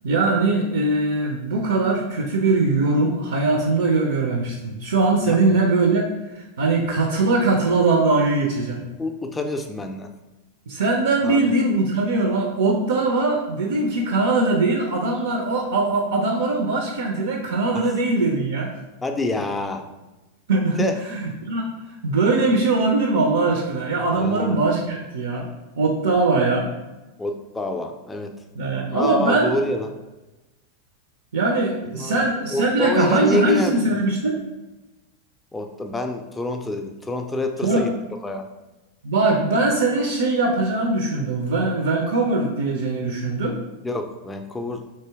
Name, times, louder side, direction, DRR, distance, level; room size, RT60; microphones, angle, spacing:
voice 1, 0.0-6.1 6.4-8.8 10.7-18.7 20.5-21.7 22.0-25.5 25.8-26.7 28.6-29.5 31.3-34.4 37.6-37.8 39.0-43.6, right 3 dB, 60° right, 1 dB, 0.4 m, -21 dB
voice 2, 9.0-10.1 11.2-11.4 17.7-17.9 19.0-19.9 20.8-21.0 24.1-24.6 27.2-28.3 28.9-29.9 31.9-32.2 32.5-33.8 35.5-37.9 38.2-38.5 43.8-44.8, left 1 dB, 10° left, 5 dB, 0.4 m, -27 dB
3.3 x 2.7 x 3.3 m, 1.1 s
figure-of-eight pair, 90°, 0 cm